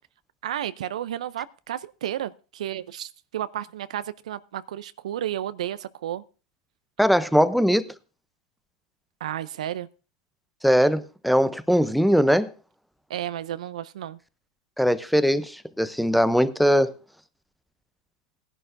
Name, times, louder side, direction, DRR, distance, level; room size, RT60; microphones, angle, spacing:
voice 1, 0.4-6.2 9.2-9.9 13.1-14.2, right 11 dB, 75° right, 0.5 m, -32 dB
voice 2, 7.0-7.9 10.6-12.5 14.8-16.9, equal, ahead, 0.6 m, -20 dB
18.5 x 11.0 x 2.6 m
hypercardioid pair, 125°, 4 cm